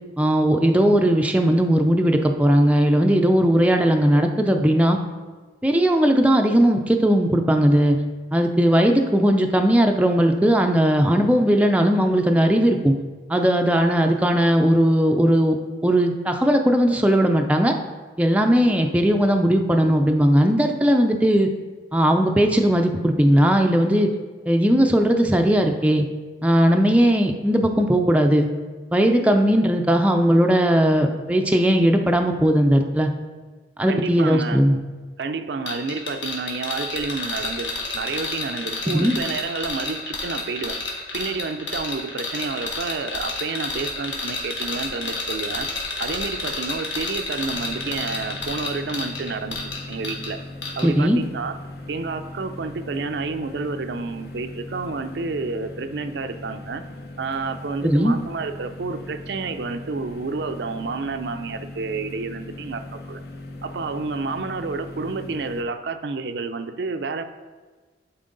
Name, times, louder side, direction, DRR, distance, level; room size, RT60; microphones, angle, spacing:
voice 1, 0.2-5.0 5.6-8.0 8.3-12.9 13.3-15.6 15.8-17.8 18.2-21.5 21.9-24.1 24.5-26.1 26.4-28.5 28.9-33.1 33.8-34.8 38.9-39.2 50.8-51.2 57.8-58.2, equal, 5° right, 3 dB, 0.4 m, -18 dB
voice 2, 33.9-34.6 35.2-40.8 41.1-45.7 46.0-49.6 49.9-50.4 50.8-51.6 51.9-56.8 57.2-63.2 63.6-67.2, right 4 dB, 65° right, 8 dB, 0.4 m, -30 dB
sound 1, 35.7-50.3 50.6-50.9, left 3 dB, 80° left, 1.7 m, -30 dB
sound 2, 47.5-65.6, left 1 dB, 55° left, 0.7 m, -39 dB
11.0 x 4.4 x 3.9 m, 1.4 s
head